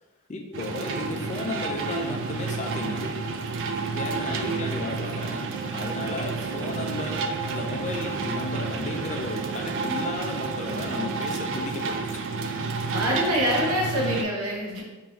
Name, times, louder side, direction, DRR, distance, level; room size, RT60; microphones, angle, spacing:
voice 1, 0.3-3.2 3.9-5.4 5.7-12.2, left 2 dB, 30° left, 2 dB, 0.5 m, -34 dB
sound 1, 0.5-14.2, right 4 dB, 55° right, 0.3 m, -30 dB
voice 2, 4.2-4.9 12.9-14.8, equal, 80° right, -2 dB, 1.0 m, -27 dB
sound 2, 5.5-10.8, right 9 dB, 30° right, 0.8 m, -44 dB
4.5 x 2.6 x 3.1 m, 1.2 s
head